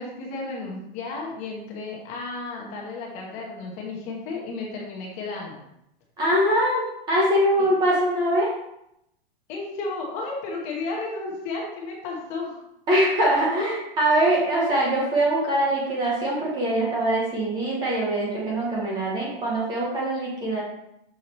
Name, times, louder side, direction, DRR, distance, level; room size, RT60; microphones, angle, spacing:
voice 1, 0.0-5.6 9.5-12.6, left 3 dB, 25° left, -1 dB, 1.1 m, -33 dB
voice 2, 6.2-8.5 12.9-20.6, right 1 dB, 15° right, -4 dB, 1.0 m, -23 dB
6.4 x 4.6 x 4.2 m, 0.80 s
supercardioid pair, 175°, 30 cm